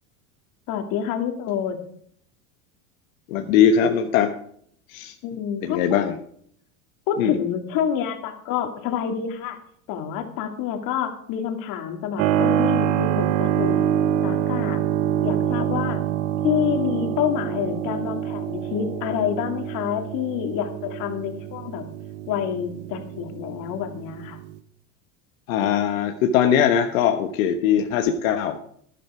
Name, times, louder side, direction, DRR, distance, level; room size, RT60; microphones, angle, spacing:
voice 1, 0.7-1.8 5.2-6.0 7.1-9.6 9.9-13.8 14.2-14.8 15.2-16.0 16.4-21.9 22.3-24.4, left 9 dB, 50° left, 5 dB, 2.4 m, -27 dB
voice 2, 3.3-4.3 4.9-5.1 5.6-6.2 7.2-7.4 25.5-28.6, left 8 dB, 80° left, 5 dB, 1.3 m, -20 dB
Keyboard (musical), 12.2-24.6, right 11 dB, 50° right, 1.1 m, -26 dB
12.0 x 11.5 x 4.9 m, 0.64 s
supercardioid pair, 135°, 41 cm